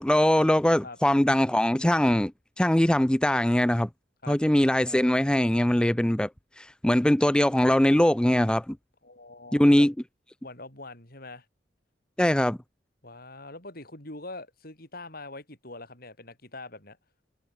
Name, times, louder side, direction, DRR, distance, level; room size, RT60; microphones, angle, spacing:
voice 1, 0.0-2.3 2.6-3.9 4.3-6.3 6.6-8.8 9.5-9.9 12.2-12.6, left 1 dB, 5° left, 0.4 m, -22 dB
voice 2, 9.0-9.9 10.4-11.5 13.0-17.0, left 2 dB, 55° left, 7.5 m, -43 dB
head